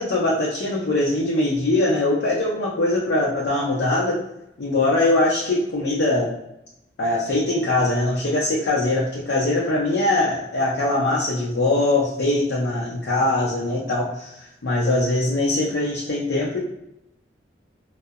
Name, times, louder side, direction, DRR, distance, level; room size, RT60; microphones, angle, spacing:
voice 1, 0.0-4.2 4.6-6.3 7.0-16.6, left 2 dB, 90° left, -5 dB, 0.5 m, -22 dB
2.6 x 2.0 x 2.3 m, 0.82 s
head